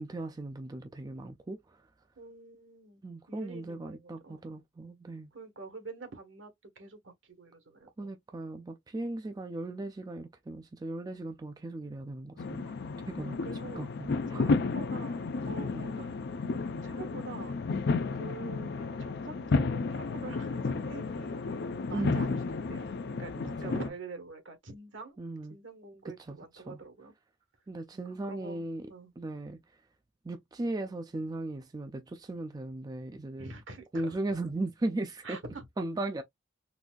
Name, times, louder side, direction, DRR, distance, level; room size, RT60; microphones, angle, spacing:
voice 1, 0.0-1.8 3.0-5.3 8.0-12.6 13.1-13.4 13.8-14.5 15.7-15.9 21.9-22.2 23.4-23.9 25.2-25.6 26.3-26.8 27.7-28.8 29.2-29.6 30.2-33.5 33.9-35.4 35.8-36.2, right 2 dB, 20° right, 0.3 m, -37 dB
voice 2, 2.2-3.0 3.3-4.4 5.3-8.1 13.1-13.8 14.3-16.2 16.6-17.5 18.1-22.4 22.7-25.2 25.5-27.1 27.9-29.1 33.4-34.1 35.2-35.7, right 3 dB, 75° right, 1.2 m, -46 dB
sound 1, 12.4-23.9, left 4 dB, 60° left, 0.5 m, -32 dB
4.0 x 2.6 x 2.2 m
head